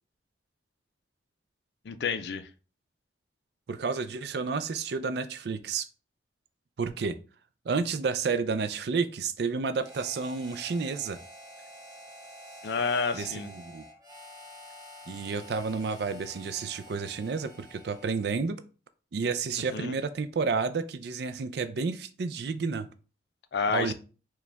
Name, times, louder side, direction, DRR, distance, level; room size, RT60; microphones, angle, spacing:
voice 1, 1.8-2.5 12.6-13.5 19.7-19.9 23.5-23.9, left 5 dB, 65° left, 11 dB, 0.4 m, -29 dB
voice 2, 3.7-5.9 6.8-7.2 7.7-11.2 13.1-13.8 15.1-18.6 19.1-22.9 23.7-23.9, right 4 dB, 60° right, 11 dB, 0.4 m, -30 dB
Harmonica, 9.8-18.4, equal, 20° right, 1.0 m, -49 dB
4.8 x 2.3 x 3.3 m, 0.36 s
head